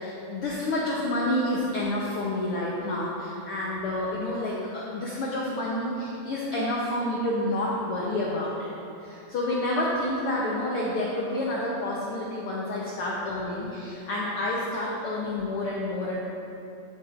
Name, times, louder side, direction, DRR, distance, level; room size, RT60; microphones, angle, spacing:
voice 1, 0.0-8.7 9.0-16.2, left 1 dB, 80° left, -5 dB, 1.2 m, -29 dB
9.4 x 8.5 x 2.5 m, 2.7 s
omnidirectional pair, 3.6 m